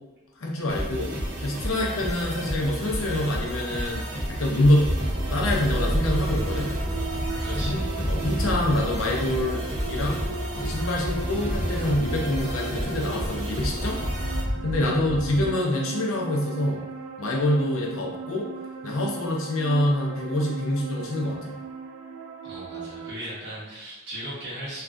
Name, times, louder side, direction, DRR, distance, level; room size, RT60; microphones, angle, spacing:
voice 1, 0.4-1.1 1.4-4.0 4.3-4.9 5.3-6.7 7.5-10.2 10.6-14.0 14.6-16.9 17.2-18.5 18.8-21.6, left 1 dB, 65° left, -2 dB, 0.6 m, -26 dB
sound 1, 0.7-14.4, right 1 dB, 75° right, 1.0 m, -32 dB
sound 2, 4.8-15.5, equal, 30° right, 0.9 m, -31 dB
sound 3, 5.0-23.1, right 5 dB, 90° right, 0.4 m, -38 dB
voice 2, 7.4-7.9 14.8-15.3 22.4-24.8, right 1 dB, 50° right, -9 dB, 1.3 m, -38 dB
3.3 x 2.4 x 2.5 m, 1.1 s
head